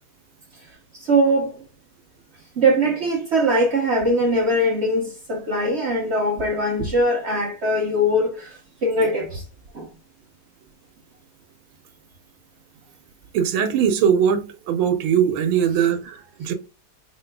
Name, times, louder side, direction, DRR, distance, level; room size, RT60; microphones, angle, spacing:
voice 1, 1.1-1.5 2.6-8.5 8.8-9.4 9.7-9.8, right 1 dB, 55° right, 0.7 m, -21 dB
voice 2, 13.3-16.5, right 8 dB, 80° right, 1.5 m, -20 dB
4.5 x 3.6 x 2.2 m
omnidirectional pair, 2.3 m